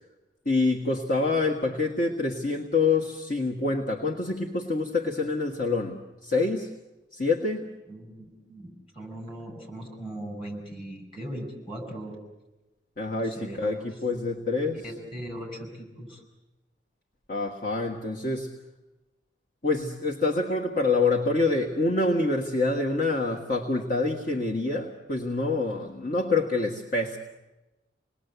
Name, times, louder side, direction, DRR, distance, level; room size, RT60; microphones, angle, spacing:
voice 1, 0.4-6.7 7.1-7.7 13.0-14.8 17.3-18.5 19.6-27.2, left 3 dB, 50° left, 0 dB, 1.7 m, -26 dB
voice 2, 7.9-12.2 13.2-13.7 14.8-16.2, right 1 dB, 30° left, 2 dB, 7.0 m, -39 dB
27.5 x 20.5 x 8.2 m, 1.1 s
head